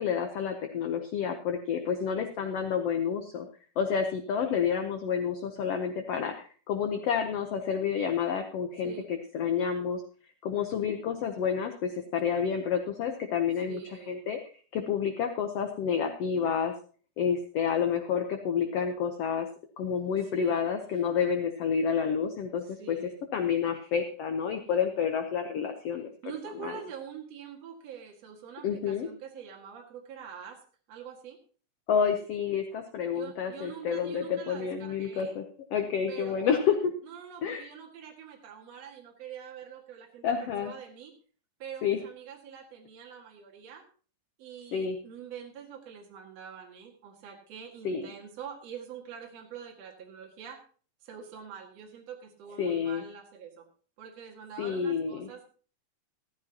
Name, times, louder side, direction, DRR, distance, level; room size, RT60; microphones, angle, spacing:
voice 1, 0.0-3.5 3.8-10.0 10.4-13.8 14.1-14.4 14.7-16.7 17.2-19.5 19.8-23.0 23.3-26.1 26.6-26.7 28.6-29.1 31.9-35.4 35.7-36.9 37.4-37.7 40.2-40.7 41.8-42.0 44.7-45.0 47.8-48.1 52.6-53.0 54.6-55.3, left 7 dB, 75° left, 5 dB, 1.4 m, -29 dB
voice 2, 1.9-2.5 8.8-9.1 13.7-14.2 20.2-20.6 21.0-21.1 22.8-23.2 26.2-30.6 30.9-31.4 33.1-35.4 36.1-36.7 37.0-41.1 41.6-43.8 44.4-50.6 51.0-53.7 54.0-55.5, right 7 dB, 50° right, 0 dB, 2.8 m, -45 dB
15.0 x 13.5 x 2.9 m, 0.41 s
omnidirectional pair, 4.1 m